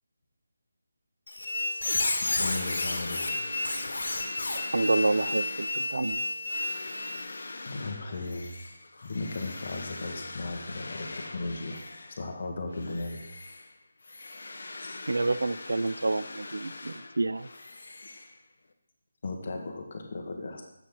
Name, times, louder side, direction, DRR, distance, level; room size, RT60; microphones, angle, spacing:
Squeak, 1.3-7.2, left 2 dB, 85° left, 1.5 m, -31 dB
sound 1, 2.3-12.4 12.7-18.7, left 2 dB, 65° left, 0.8 m, -42 dB
voice 1, 2.4-3.3 7.7-8.5 9.0-11.1 11.3-11.8 12.2-13.2 14.8-15.0 19.2-20.6, left 3 dB, 40° left, 2 dB, 1.3 m, -36 dB
voice 2, 4.7-6.2 15.1-17.5, right 2 dB, 85° right, 15 dB, 0.4 m, -28 dB
7.6 x 7.4 x 3.8 m, 0.82 s
figure-of-eight pair, 175°, 0 cm